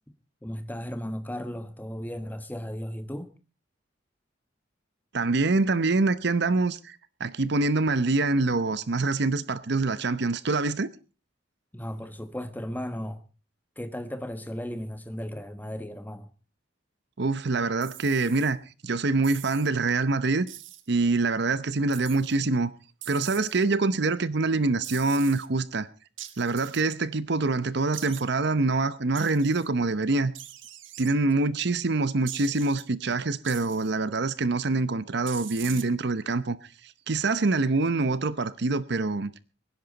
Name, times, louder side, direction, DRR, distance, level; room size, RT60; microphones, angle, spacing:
voice 1, 0.4-3.3 11.7-13.2 13.8-16.3, equal, 10° left, 1.3 m, -35 dB
voice 2, 5.1-10.9 17.2-18.6 18.8-20.5 20.9-22.7 23.1-25.9 26.4-30.3 31.0-36.6 36.8-39.3, right 3 dB, 60° right, 0.8 m, -25 dB
sound 1, 17.8-18.5 19.2-19.7 20.5-20.9 21.9-22.4 23.0-23.6 24.8-25.5 26.2-26.9 27.9-28.2 29.1-29.7 30.3-31.1 32.3-32.8 33.4-34.0 35.3-35.8, right 12 dB, 75° right, 1.3 m, -42 dB
24.0 x 10.5 x 4.0 m
head